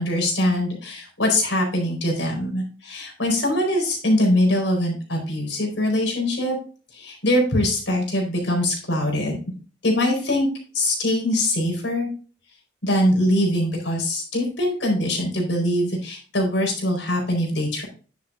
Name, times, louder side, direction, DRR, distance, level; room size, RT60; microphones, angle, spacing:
voice 1, 0.0-6.6 6.9-9.4 9.8-10.5 10.7-12.1 12.8-17.8, left 1 dB, 80° left, 1 dB, 4.4 m, -22 dB
10.5 x 7.3 x 2.5 m, 0.37 s
head